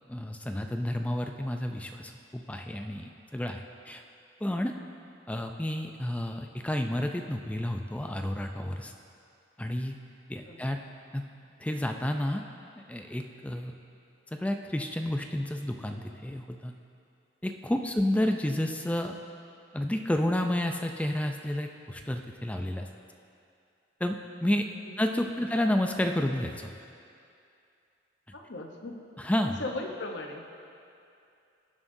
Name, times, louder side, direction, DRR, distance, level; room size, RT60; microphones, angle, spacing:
voice 1, 0.1-4.0 4.4-4.7 5.3-8.9 9.6-9.9 10.3-10.8 11.1-11.2 11.6-12.4 12.9-13.7 14.3-16.7 17.4-19.2 19.7-22.9 24.0-24.7 25.0-26.7 29.2-29.6, left 1 dB, 5° left, 4 dB, 0.4 m, -30 dB
voice 2, 28.3-29.0 29.6-30.5, left 2 dB, 65° left, 2 dB, 0.8 m, -38 dB
18.5 x 7.4 x 2.7 m, 2.6 s
head